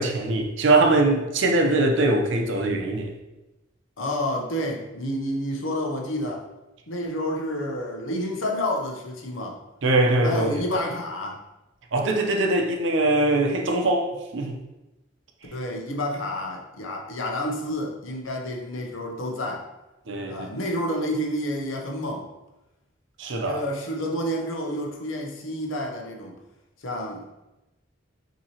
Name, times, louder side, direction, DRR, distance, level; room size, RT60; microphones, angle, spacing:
voice 1, 0.0-3.1 9.8-10.5 11.9-14.6 20.1-20.5 23.2-23.6, right 2 dB, 75° right, 2 dB, 0.6 m, -22 dB
voice 2, 4.0-6.5 6.9-9.6 10.2-11.4 15.5-19.7 20.3-22.3 23.5-26.4 26.8-27.3, left 1 dB, 85° left, 1 dB, 0.8 m, -29 dB
5.6 x 2.9 x 2.9 m, 1.0 s
head